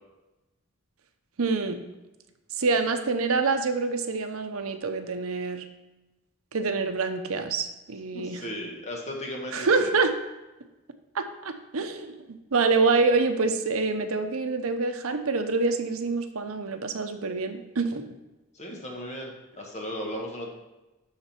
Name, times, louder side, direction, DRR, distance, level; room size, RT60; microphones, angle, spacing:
voice 1, 1.4-1.8 2.6-5.7 6.5-8.4 9.5-10.1 11.1-12.2 12.5-18.0, right 4 dB, 80° right, 8 dB, 0.8 m, -26 dB
voice 2, 8.1-9.9 18.5-20.5, equal, 30° left, -1 dB, 1.6 m, -36 dB
12.5 x 4.2 x 4.5 m, 1.0 s
head